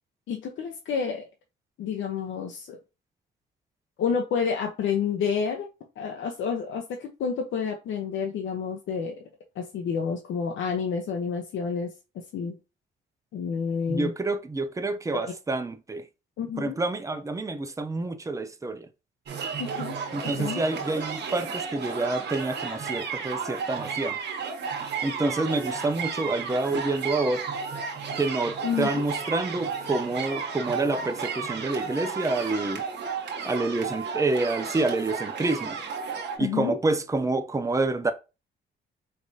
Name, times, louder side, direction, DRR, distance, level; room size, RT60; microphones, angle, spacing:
voice 1, 0.3-1.3 1.8-2.8 4.0-5.7 6.0-9.3 9.6-11.9 12.3-12.6 13.3-14.1 15.1-15.3 16.4-16.8 19.6-20.0 20.4-20.6 28.6-29.0 36.4-36.8, left 6 dB, 75° left, 0.8 m, -29 dB
voice 2, 13.9-16.0 16.6-18.9 20.1-24.2 25.0-27.4 28.2-32.8 33.4-35.8 36.4-38.1, right 2 dB, 15° right, 0.6 m, -28 dB
sound 1, 19.3-36.4, right 6 dB, 60° right, 1.3 m, -33 dB
4.7 x 3.3 x 2.7 m
cardioid pair, 90°, 20 cm